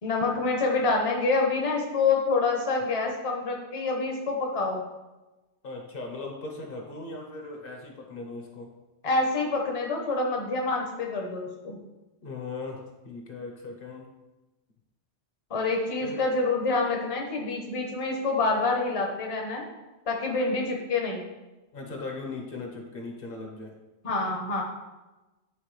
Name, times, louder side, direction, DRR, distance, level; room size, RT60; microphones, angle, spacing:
voice 1, 0.0-4.8 9.0-11.8 15.5-19.6 20.1-21.3 24.0-24.6, left 3 dB, 35° left, 1 dB, 0.8 m, -27 dB
voice 2, 5.6-8.7 12.2-14.1 16.0-16.2 21.7-23.7, left 3 dB, 55° left, 1 dB, 1.1 m, -38 dB
9.2 x 3.6 x 3.2 m, 1.1 s
omnidirectional pair, 1.1 m